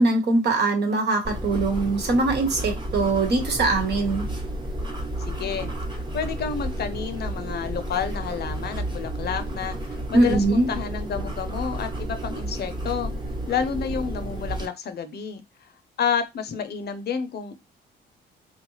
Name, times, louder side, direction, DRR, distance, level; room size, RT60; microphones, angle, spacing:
voice 1, 0.0-4.2 10.1-10.7, right 2 dB, 55° right, 1.3 m, -22 dB
sound 1, 1.2-14.7, right 1 dB, 20° right, 1.1 m, -31 dB
voice 2, 5.3-13.1 13.5-15.4 16.0-17.5, left 7 dB, 55° left, 0.6 m, -30 dB
3.7 x 2.3 x 3.1 m
cardioid pair, 90°, 20 cm